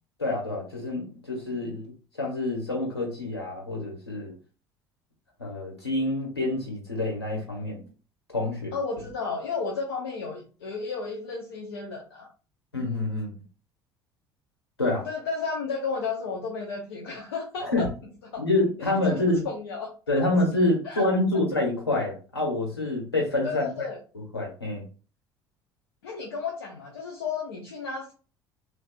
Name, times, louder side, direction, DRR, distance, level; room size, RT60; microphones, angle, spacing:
voice 1, 0.2-1.9 2.2-4.3 5.4-7.8 8.3-8.8 12.7-13.3 14.8-15.1 17.6-17.9 18.4-19.5 20.1-23.9 24.1-24.8, left 2 dB, 85° left, 1.3 m, -27 dB
voice 2, 8.7-12.3 15.1-17.9 18.3-18.4 18.8-20.2 20.8-21.0 23.4-24.0 26.0-28.1, left 4 dB, 70° left, 0.7 m, -33 dB
3.9 x 3.3 x 2.4 m
figure-of-eight pair, 60°, 13 cm